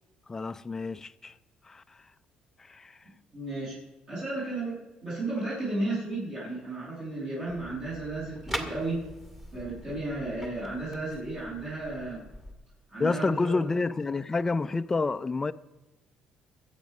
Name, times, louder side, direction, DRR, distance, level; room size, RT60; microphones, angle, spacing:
voice 1, 0.3-1.3 1.6-2.0 2.6-3.0 13.0-15.5, left 3 dB, 20° left, 0.5 m, -29 dB
voice 2, 3.3-3.8 4.1-9.0 9.5-12.2 12.9-13.7, right 2 dB, 45° right, 6.8 m, -34 dB
sound 1, 7.5-12.5, equal, 10° right, 1.9 m, -42 dB
22.5 x 8.2 x 5.5 m
cardioid pair, 130°, 2 cm